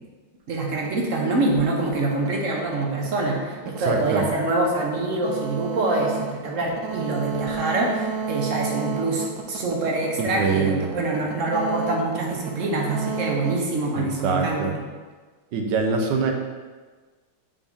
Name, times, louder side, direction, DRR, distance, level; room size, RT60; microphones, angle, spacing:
voice 1, 0.5-14.6, right 2 dB, 50° right, -1 dB, 1.1 m, -25 dB
sound 1, 0.7-14.6, right 6 dB, 90° right, 1.5 m, -33 dB
voice 2, 3.8-4.2 10.2-10.8 13.9-14.7 15.5-16.3, right 5 dB, 70° right, 3 dB, 1.3 m, -24 dB
7.2 x 4.1 x 3.5 m, 1.4 s
omnidirectional pair, 2.0 m